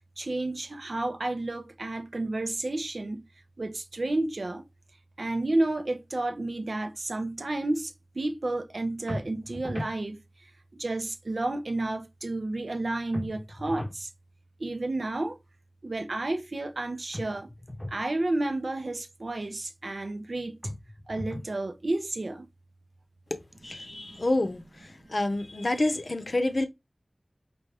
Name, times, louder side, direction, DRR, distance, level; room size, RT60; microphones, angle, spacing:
voice 1, 0.2-3.2 3.6-4.7 5.2-14.1 14.6-15.4 15.8-17.5 17.9-20.6 21.1-22.5 23.9-24.2 25.0-25.1, right 2 dB, 70° right, 0.5 m, -31 dB
sound 1, 9.1-10.0 13.1-14.0 17.1-18.0 20.6-21.6, left 1 dB, 20° left, 0.7 m, -37 dB
voice 2, 23.6-26.6, left 2 dB, 60° left, 0.7 m, -28 dB
4.6 x 2.5 x 3.3 m
wide cardioid pair, 60°, 0 cm